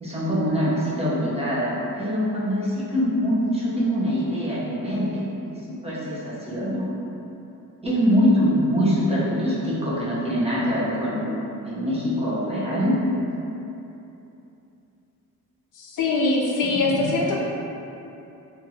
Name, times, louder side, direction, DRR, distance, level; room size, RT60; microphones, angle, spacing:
voice 1, 0.0-5.2 5.5-6.9 7.8-11.3 11.6-12.9 16.7-17.1, equal, 20° right, -8 dB, 0.6 m, -24 dB
voice 2, 15.8-17.4, left 3 dB, 60° left, -3 dB, 0.5 m, -23 dB
2.8 x 2.5 x 2.7 m, 2.9 s
cardioid pair, 100°, 34 cm